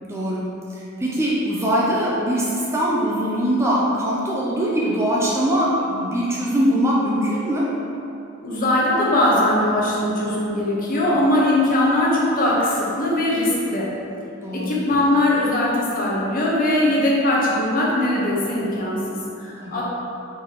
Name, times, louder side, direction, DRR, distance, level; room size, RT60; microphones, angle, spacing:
voice 1, 0.0-7.8 14.4-14.9 19.6-19.8, equal, 15° right, -5 dB, 0.4 m, -22 dB
voice 2, 8.4-13.9 14.5-19.8, left 1 dB, 40° left, -5 dB, 0.9 m, -20 dB
4.5 x 2.9 x 4.1 m, 2.8 s
head